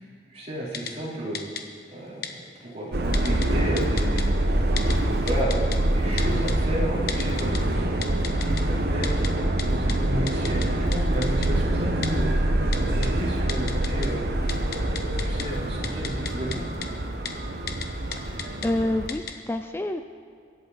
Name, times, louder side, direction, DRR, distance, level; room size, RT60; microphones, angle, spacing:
voice 1, 0.3-1.4 1.9-2.2 2.6-4.3 4.7-12.3 12.8-14.2 14.6-16.6, right 1 dB, 35° right, -6 dB, 3.8 m, -33 dB
Typing, 0.7-0.9 1.3-1.6 2.2-2.3 3.1-3.5 3.8-4.2 4.8-4.9 5.3-5.8 6.2-6.5 7.1-7.6 8.0-8.6 9.0-9.3 9.6-9.7 9.9-10.0 10.3-10.7 10.9-11.0 11.2-11.5 12.0-12.1 12.7-13.1 13.5-14.1 14.4-15.4 15.8-16.6 16.8-16.9 17.3-17.4 17.7-17.9 18.1-18.7 19.1-19.3, left 8 dB, 60° left, 1.1 m, -33 dB
Subway metro underground, 2.9-19.1, right 1 dB, 65° right, 1.1 m, -25 dB
voice 2, 18.2-20.0, left 1 dB, 15° left, 8 dB, 0.4 m, -28 dB
23.5 x 8.5 x 4.1 m, 2.4 s
head